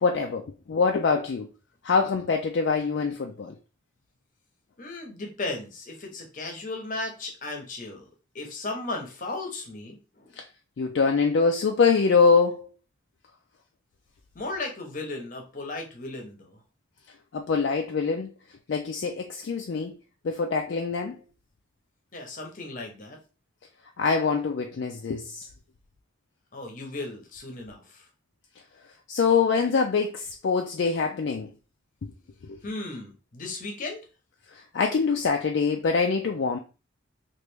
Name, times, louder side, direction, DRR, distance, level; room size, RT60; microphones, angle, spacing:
voice 1, 0.0-1.5 1.8-3.5 10.8-12.7 17.3-18.3 18.7-19.9 20.2-21.2 24.0-25.5 29.1-31.5 32.4-32.6 34.5-36.6, left 5 dB, 60° left, 0.3 m, -24 dB
voice 2, 4.8-8.1 8.3-10.4 14.3-16.6 22.1-23.2 26.5-28.1 32.6-34.0, left 2 dB, 40° left, 0.8 m, -36 dB
3.0 x 2.5 x 3.3 m
head